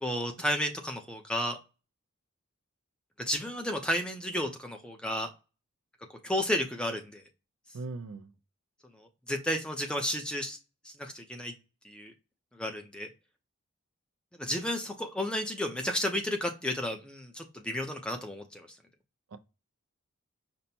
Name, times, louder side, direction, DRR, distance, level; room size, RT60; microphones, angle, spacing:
voice 1, 0.0-1.6 3.2-5.3 6.2-7.2 9.3-10.6 10.8-11.5 11.8-12.1 12.5-13.1 14.4-18.7, left 1 dB, 5° left, 0.5 m, -32 dB
voice 2, 7.7-8.3 19.3-19.4, right 3 dB, 80° right, 0.5 m, -39 dB
5.3 x 2.1 x 4.2 m
head